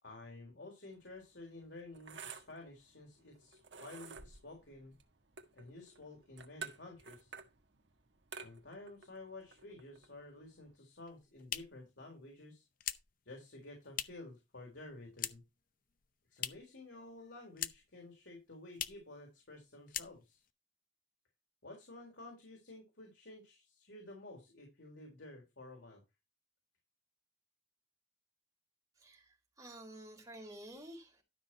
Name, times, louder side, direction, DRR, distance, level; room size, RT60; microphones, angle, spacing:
voice 1, 0.0-4.9 5.5-7.4 8.4-12.6 13.3-15.4 16.3-20.4 21.6-26.0, left 2 dB, 90° left, 4.0 m, -52 dB
sound 1, 0.9-10.7, right 5 dB, 80° right, 1.6 m, -52 dB
sound 2, 10.9-14.4 14.6-15.6 15.9-16.8 17.1-18.0 18.3-18.4 18.7-19.1 19.5-19.6 19.9-20.5, left 11 dB, 50° left, 0.7 m, -43 dB
voice 2, 29.0-31.2, right 1 dB, 20° right, 4.3 m, -51 dB
12.5 x 6.2 x 4.3 m
head